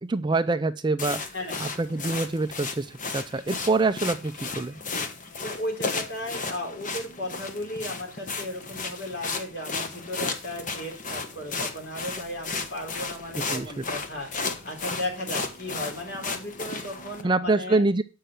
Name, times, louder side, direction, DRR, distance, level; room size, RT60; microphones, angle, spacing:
voice 1, 0.0-1.2 1.6-4.8 13.5-13.8 17.2-18.0, right 3 dB, 20° right, 11 dB, 0.4 m, -25 dB
sound 1, 1.0-17.2, left 4 dB, 40° left, 1.2 m, -34 dB
voice 2, 5.4-17.8, left 1 dB, 55° left, 2 dB, 4.0 m, -35 dB
8.1 x 5.6 x 7.7 m, 0.33 s
head